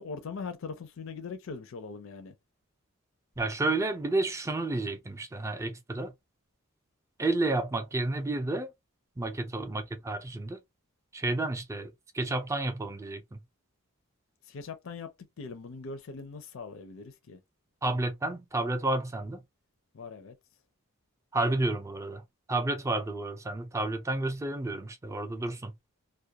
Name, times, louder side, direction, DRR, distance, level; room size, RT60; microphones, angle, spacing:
voice 1, 0.0-2.3 14.5-15.1 15.4-17.4 19.9-20.4, left 4 dB, 65° left, 0.4 m, -41 dB
voice 2, 3.4-6.1 7.2-8.7 9.2-10.6 11.1-13.4 17.8-19.4 21.3-22.2 22.5-25.7, right 2 dB, 15° right, 0.3 m, -31 dB
2.3 x 2.1 x 2.8 m
head